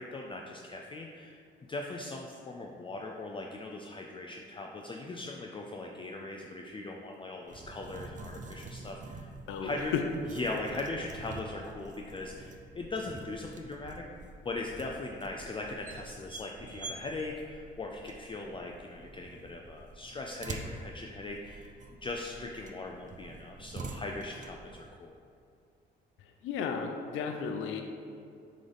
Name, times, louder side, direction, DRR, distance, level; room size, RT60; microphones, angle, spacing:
voice 1, 0.0-1.4 1.7-9.3 9.6-9.9 10.3-14.0 14.4-21.7 22.0-25.1, left 2 dB, 25° left, 1 dB, 0.5 m, -39 dB
sound 1, 7.5-24.9, right 3 dB, 40° right, 0.6 m, -47 dB
voice 2, 9.5-10.0 26.4-27.8, left 7 dB, 85° left, 4 dB, 0.5 m, -33 dB
7.7 x 3.8 x 3.4 m, 2.5 s
cardioid pair, 90°, 20 cm